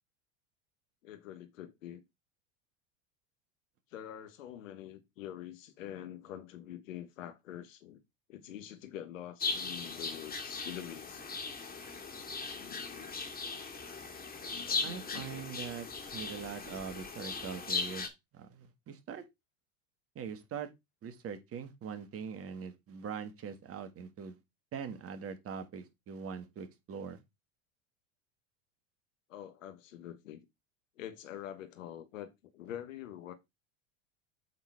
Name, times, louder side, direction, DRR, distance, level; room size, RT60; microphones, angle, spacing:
voice 1, 1.0-2.0 3.9-8.0 8.3-11.3 12.5-13.2 14.4-15.5 17.7-17.9 29.3-30.5 31.0-33.3, left 11 dB, 80° left, 1.3 m, -46 dB
sound 1, 9.4-18.1, left 4 dB, 25° left, 2.2 m, -38 dB
voice 2, 14.8-15.9 16.1-18.1 18.3-19.2 20.2-20.7 21.0-24.4 24.7-27.2, right 7 dB, 35° right, 1.7 m, -42 dB
8.2 x 4.0 x 4.6 m
hypercardioid pair, 90°, 38 cm